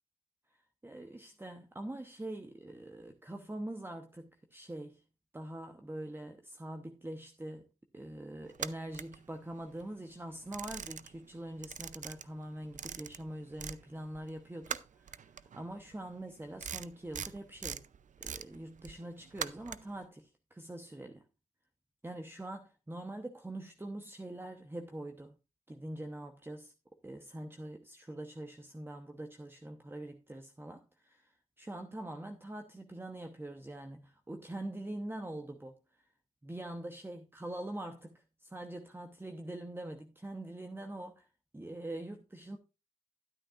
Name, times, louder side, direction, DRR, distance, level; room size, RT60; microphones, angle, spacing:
voice 1, 0.8-5.0 5.3-7.7 7.9-17.8 18.2-21.2 22.0-25.3 25.7-26.7 27.0-35.8 36.4-41.3 41.5-42.6, right 1 dB, 15° right, 1.0 m, -44 dB
sound 1, 8.5-9.8 10.2-11.3 11.6-13.8 14.1-20.0, right 8 dB, 65° right, 0.5 m, -42 dB
12.5 x 8.8 x 2.5 m
cardioid pair, 50°, 14 cm